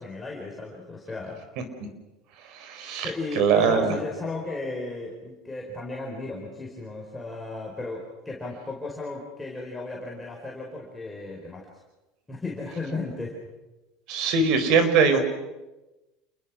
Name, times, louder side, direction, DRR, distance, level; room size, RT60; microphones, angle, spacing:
voice 1, 0.0-1.4 3.0-11.7 12.3-13.4, left 3 dB, 10° left, -3 dB, 5.1 m, -35 dB
voice 2, 2.5-3.9 14.1-15.2, right 5 dB, 60° right, 9 dB, 4.5 m, -22 dB
29.0 x 20.5 x 6.4 m, 1.1 s
supercardioid pair, 120°, 0 cm